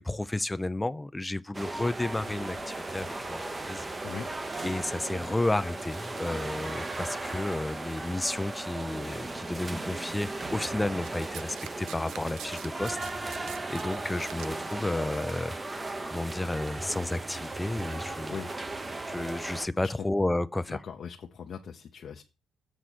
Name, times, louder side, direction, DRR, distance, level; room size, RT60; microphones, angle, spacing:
voice 1, 0.0-3.4 3.7-3.9 4.6-15.5 16.0-18.4 19.1-20.8, left 2 dB, 10° left, 0.4 m, -32 dB
sound 1, 1.5-19.7, right 2 dB, 20° right, 0.7 m, -36 dB
sound 2, 2.1-7.6, left 7 dB, 75° left, 1.3 m, -54 dB
Domestic sounds home sounds, 11.0-15.0 15.9-16.0, right 10 dB, 80° right, 0.4 m, -45 dB
voice 2, 20.7-22.2, left 7 dB, 55° left, 0.7 m, -40 dB
7.6 x 4.0 x 6.4 m
cardioid pair, 90°, 0 cm